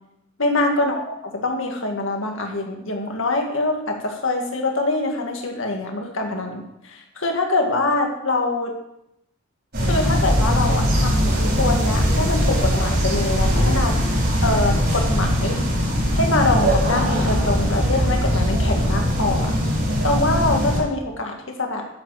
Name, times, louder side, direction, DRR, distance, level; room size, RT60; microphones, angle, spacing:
voice 1, 0.4-8.7 9.8-14.2 14.4-15.6 16.1-19.6 20.0-21.9, left 2 dB, 65° left, 2 dB, 1.9 m, -24 dB
sound 1, 9.7-20.8, equal, 50° right, 5.0 m, -20 dB
12.0 x 8.0 x 4.9 m, 0.82 s
head